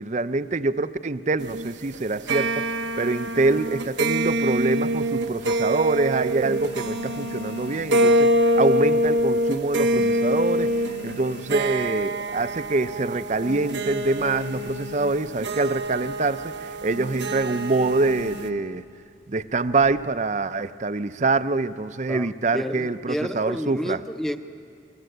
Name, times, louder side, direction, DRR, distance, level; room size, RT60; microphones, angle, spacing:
voice 1, 0.0-18.8 19.3-24.0, right 3 dB, 40° right, 0.6 m, -25 dB
sound 1, 1.4-18.5, right 1 dB, 90° right, 1.0 m, -25 dB
sound 2, 5.2-5.8 6.2-8.7 9.0-9.4 9.7-11.9 12.4-12.5 12.7-12.8 13.1-15.3 15.6-15.9 16.2-16.4 16.9-18.7 19.4-20.0, left 3 dB, 70° left, 6.3 m, -41 dB
voice 2, 22.1-24.4, equal, ahead, 0.8 m, -30 dB
29.0 x 22.0 x 7.9 m
head